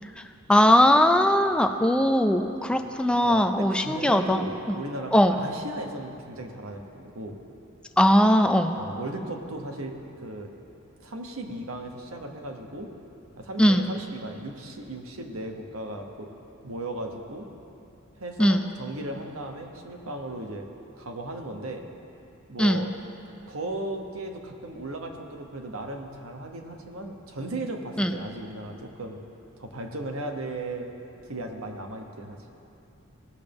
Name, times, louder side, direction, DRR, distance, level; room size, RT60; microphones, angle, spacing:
voice 1, 0.5-4.4 5.1-5.4 8.0-8.8 13.6-13.9 18.4-18.7 22.6-22.8 28.0-28.1, equal, 5° left, 5 dB, 0.4 m, -20 dB
voice 2, 3.2-7.4 8.7-10.5 11.0-12.9 13.4-16.3 16.6-17.5 18.2-20.7 21.0-21.9 22.5-22.9 23.5-29.2 29.6-30.9 31.3-32.4, right 2 dB, 70° right, 3 dB, 1.0 m, -36 dB
18.0 x 6.6 x 3.5 m, 2.8 s
head